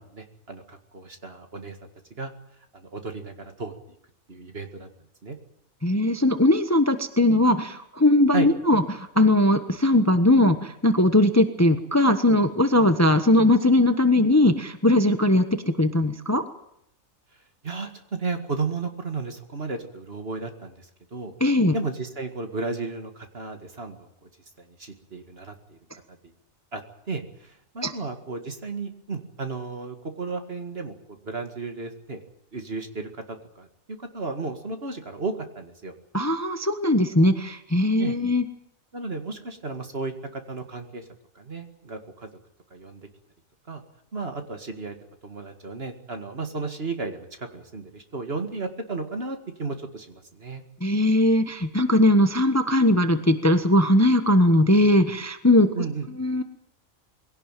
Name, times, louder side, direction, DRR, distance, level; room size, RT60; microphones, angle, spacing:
voice 1, 0.0-1.8 2.2-2.3 2.7-3.7 4.3-4.9 5.2-5.4 8.3-8.5 17.6-21.3 21.7-24.1 24.6-25.8 26.7-26.8 27.1-30.9 31.3-32.2 32.5-33.7 34.1-35.9 38.0-38.1 38.9-41.0 41.4-42.3 42.7-43.1 43.7-43.8 44.1-44.9 45.2-50.6 55.7-56.1, right 4 dB, 45° right, 6 dB, 2.3 m, -33 dB
voice 2, 5.8-16.4 21.4-21.7 27.8-27.9 36.1-38.4 50.8-55.7 56.2-56.4, left 1 dB, 10° left, 8 dB, 1.1 m, -20 dB
22.0 x 17.5 x 9.1 m, 0.75 s
omnidirectional pair, 1.5 m